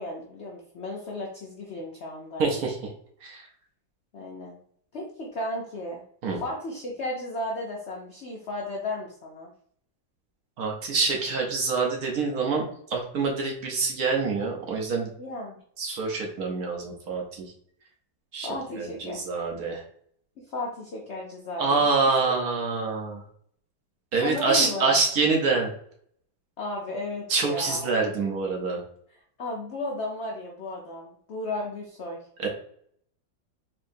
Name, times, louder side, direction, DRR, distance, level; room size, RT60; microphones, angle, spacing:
voice 1, 0.0-2.5 4.1-4.6 4.9-6.0 6.4-9.5 15.2-15.6 18.4-19.2 20.4-21.9 22.2-22.3 24.2-24.9 26.6-27.9 29.4-32.2, left 2 dB, 80° left, -1 dB, 0.6 m, -34 dB
voice 2, 2.4-2.8 3.2-3.5 6.2-6.4 10.6-15.1 15.8-17.5 18.3-18.5 18.8-19.8 21.6-23.2 24.1-25.7 27.3-28.8 32.4-32.5, right 4 dB, 60° right, 0 dB, 1.1 m, -26 dB
4.4 x 2.8 x 2.6 m, 0.63 s
omnidirectional pair, 2.0 m